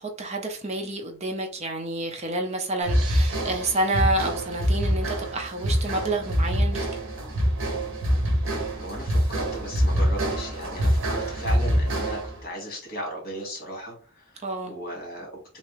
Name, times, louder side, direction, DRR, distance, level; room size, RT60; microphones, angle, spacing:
voice 1, 0.0-6.9 14.4-14.7, right 2 dB, 30° right, 0.6 m, -29 dB
sound 1, 2.8-12.4, equal, 70° right, 1.0 m, -25 dB
voice 2, 8.8-15.4, right 1 dB, 50° left, 1.6 m, -36 dB
3.3 x 2.9 x 3.0 m
head